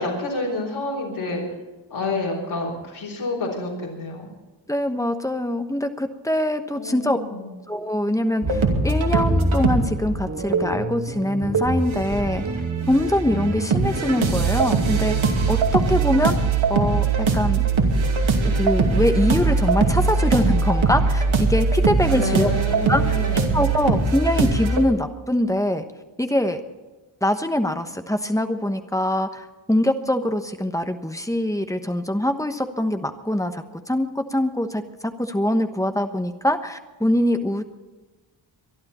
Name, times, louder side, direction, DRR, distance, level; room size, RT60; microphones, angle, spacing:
voice 1, 0.0-1.4 1.9-4.3 6.7-7.5 22.0-23.5, left 2 dB, 85° left, -1 dB, 4.4 m, -28 dB
voice 2, 4.7-7.2 7.7-12.4 12.9-16.4 16.7-17.6 18.4-22.5 22.9-23.0 23.5-25.8 26.2-26.6 27.2-37.6, left 1 dB, 5° left, 7 dB, 1.1 m, -23 dB
sound 1, 8.4-15.8, right 2 dB, 35° right, 2.4 m, -29 dB
sound 2, 8.4-9.8 10.5-10.8 11.5-12.5 12.8-24.8, right 4 dB, 85° right, 2.6 m, -21 dB
23.5 x 12.0 x 4.3 m, 1.2 s
wide cardioid pair, 160°, 46 cm